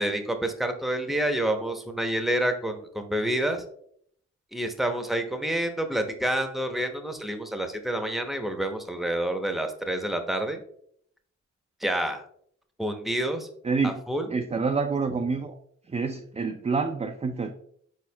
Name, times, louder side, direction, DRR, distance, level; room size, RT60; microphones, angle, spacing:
voice 1, 0.0-3.6 4.5-10.6 11.8-12.2 12.8-13.5 13.8-14.3, right 1 dB, ahead, 6 dB, 0.7 m, -28 dB
voice 2, 14.3-15.5 15.9-17.5, right 4 dB, 20° right, 5 dB, 0.4 m, -27 dB
4.4 x 4.4 x 2.2 m, 0.65 s
supercardioid pair, 45°, 31 cm